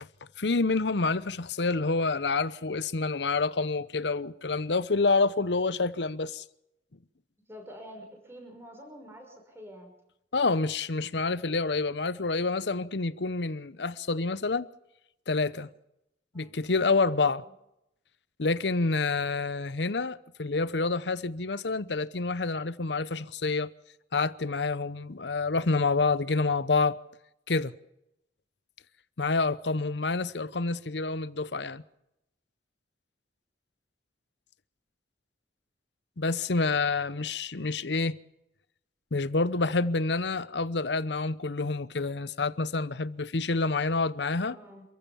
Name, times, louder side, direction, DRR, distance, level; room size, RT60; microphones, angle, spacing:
voice 1, 0.4-6.4 10.3-14.7 15.3-15.7 16.3-17.4 18.4-23.7 24.1-27.0 27.5-27.7 29.2-31.8 36.2-38.2 39.1-44.6, left 3 dB, 75° left, 0.9 m, -28 dB
voice 2, 7.5-9.9 16.3-16.5 16.9-17.5 44.5-44.8, equal, 15° right, 5.8 m, -47 dB
27.5 x 15.0 x 7.1 m
head